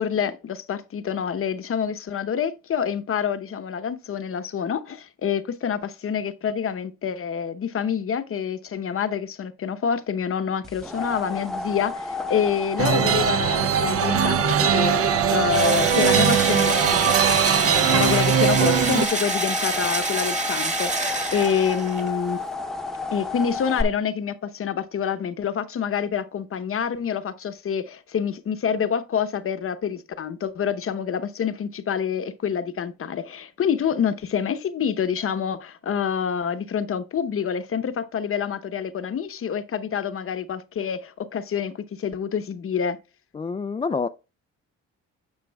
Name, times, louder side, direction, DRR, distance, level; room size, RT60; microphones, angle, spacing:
voice 1, 0.0-15.0 15.3-17.1 17.6-22.4 23.1-43.0, left 7 dB, 45° left, 0.9 m, -27 dB
sound 1, 10.6-23.8, left 3 dB, ahead, 0.9 m, -31 dB
sound 2, 12.8-19.1, right 8 dB, 50° right, 0.6 m, -21 dB
Engine / Drill, 15.5-22.1, right 3 dB, 25° right, 1.6 m, -27 dB
voice 2, 43.3-44.1, left 4 dB, 20° left, 0.3 m, -27 dB
9.7 x 6.8 x 2.3 m
cardioid pair, 90°, 30 cm